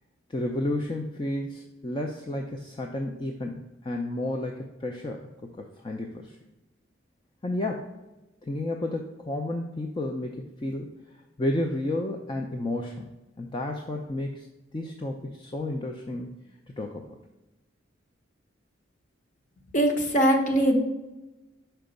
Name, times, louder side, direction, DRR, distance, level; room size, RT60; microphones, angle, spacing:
voice 1, 0.3-5.3 5.8-6.4 7.4-7.9 8.4-10.9 11.4-13.1 13.4-14.5 14.7-16.4 16.8-17.0, left 1 dB, 25° left, 2 dB, 0.4 m, -31 dB
voice 2, 19.7-20.8, right 1 dB, 40° left, 3 dB, 0.9 m, -21 dB
5.7 x 4.5 x 5.2 m, 1.0 s
head